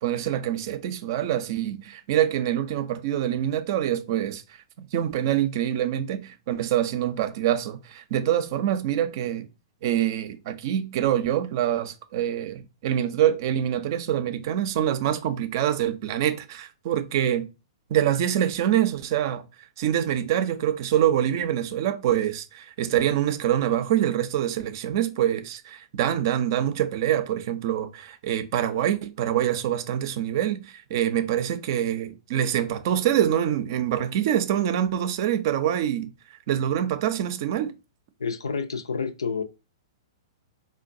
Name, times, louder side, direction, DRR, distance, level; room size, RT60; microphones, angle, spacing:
voice 1, 0.0-4.4 4.9-9.5 9.8-17.5 17.9-19.4 19.8-36.1 36.5-37.7, right 11 dB, 50° right, 0.5 m, -25 dB
voice 2, 38.2-39.4, left 5 dB, 85° left, 0.5 m, -29 dB
3.8 x 2.2 x 2.5 m
hypercardioid pair, 115°, 2 cm